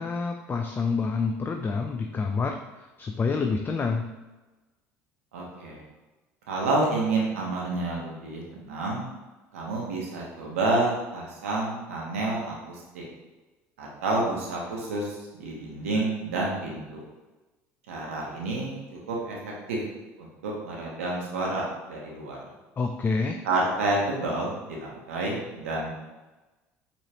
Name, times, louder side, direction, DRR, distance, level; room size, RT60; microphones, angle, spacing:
voice 1, 0.0-4.1 22.8-23.4, left 4 dB, 30° left, 3 dB, 0.4 m, -28 dB
voice 2, 5.3-5.8 6.5-9.1 9.5-13.1 13.8-17.0 17.9-18.8 19.1-19.4 19.7-19.8 20.2-22.4 23.4-26.0, right 2 dB, 90° right, -2 dB, 0.9 m, -29 dB
4.7 x 3.1 x 2.9 m, 1.1 s
hypercardioid pair, 70°, 7 cm